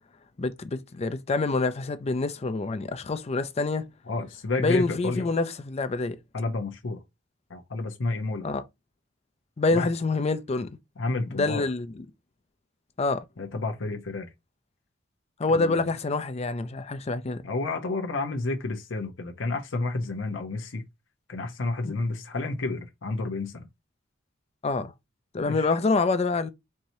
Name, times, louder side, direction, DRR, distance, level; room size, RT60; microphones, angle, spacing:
voice 1, 0.4-3.8 4.6-6.2 8.4-8.6 9.6-10.7 11.3-11.9 13.0-13.2 15.4-17.4 21.8-21.9 24.6-24.9 25.3-26.5, left 3 dB, 35° left, 0.5 m, -26 dB
voice 2, 4.1-5.3 6.3-7.0 7.5-8.5 9.7-9.9 11.0-11.7 13.4-14.3 15.5-15.9 17.4-20.8 21.3-23.7 25.5-25.7, left 3 dB, 75° left, 0.8 m, -30 dB
4.7 x 2.8 x 2.7 m
head